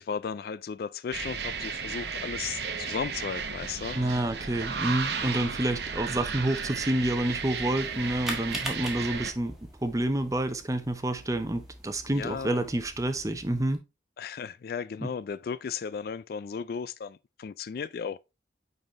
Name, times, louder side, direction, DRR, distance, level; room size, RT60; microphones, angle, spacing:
voice 1, 0.0-4.0 12.1-12.6 14.2-18.2, left 6 dB, 55° left, 0.3 m, -35 dB
sound 1, 1.1-9.3, right 5 dB, 70° right, 1.0 m, -34 dB
voice 2, 3.9-9.5 9.8-13.8 15.0-15.1, right 1 dB, 20° right, 0.7 m, -28 dB
sound 2, 7.2-13.8, equal, ahead, 1.6 m, -43 dB
8.9 x 4.0 x 3.1 m
head